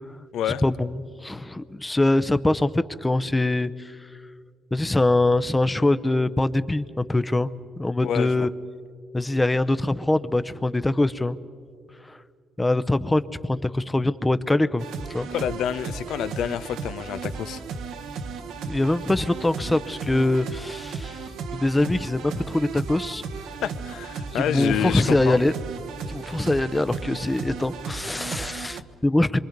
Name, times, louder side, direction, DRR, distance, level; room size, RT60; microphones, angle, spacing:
voice 1, 0.6-3.9 4.7-7.5 7.8-8.5 9.1-11.4 12.1-12.2 12.6-14.8 15.1-15.3 18.7-21.2 21.5-23.2 24.3-25.5 26.1-29.4, left 2 dB, 15° left, 14 dB, 0.7 m, -23 dB
voice 2, 8.0-8.5 15.3-17.6 23.6-25.4, left 10 dB, 80° left, 14 dB, 0.6 m, -28 dB
sound 1, 14.8-28.8, right 5 dB, 85° right, 1.1 m, -35 dB
26.5 x 24.0 x 5.3 m, 2.2 s
cardioid pair, 90°, 0 cm